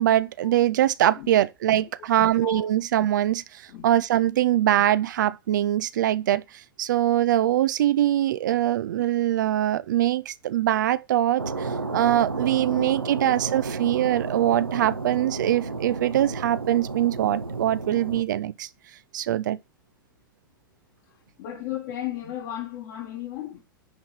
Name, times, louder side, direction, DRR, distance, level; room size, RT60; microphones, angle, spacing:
voice 1, 0.0-6.4 6.8-18.7 19.1-19.6, right 12 dB, 60° right, 0.6 m, -23 dB
voice 2, 1.7-2.7 3.7-3.9 4.7-4.9 12.7-13.0 21.1-23.7, left 12 dB, 50° left, 1.8 m, -36 dB
sound 1, 11.4-18.2, right 3 dB, 90° right, 1.1 m, -32 dB
10.5 x 3.9 x 7.4 m
figure-of-eight pair, 100°, 12 cm